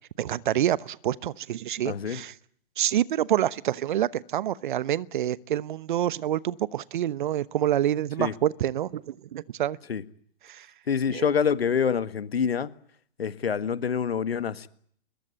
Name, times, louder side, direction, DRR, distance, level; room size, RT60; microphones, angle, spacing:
voice 1, 0.2-2.3 2.8-9.8 10.4-10.7 11.1-11.3, right 11 dB, 50° right, 1.1 m, -27 dB
voice 2, 1.8-2.2 8.2-8.3 9.9-10.0 10.9-12.7 13.2-14.7, left 7 dB, 70° left, 1.7 m, -26 dB
23.5 x 22.0 x 8.8 m
figure-of-eight pair, 120°, 31 cm